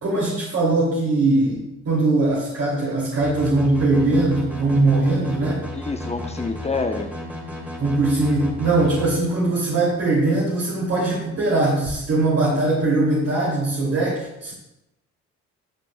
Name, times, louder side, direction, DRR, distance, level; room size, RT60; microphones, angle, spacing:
voice 1, 0.0-5.6 7.8-14.5, right 2 dB, 55° right, -6 dB, 2.5 m, -21 dB
sound 1, 3.2-9.1, left 1 dB, 5° right, 2.2 m, -33 dB
voice 2, 5.7-7.1, left 3 dB, 20° left, 5 dB, 0.8 m, -27 dB
13.0 x 5.8 x 2.2 m, 0.87 s
cardioid pair, 90°, 30 cm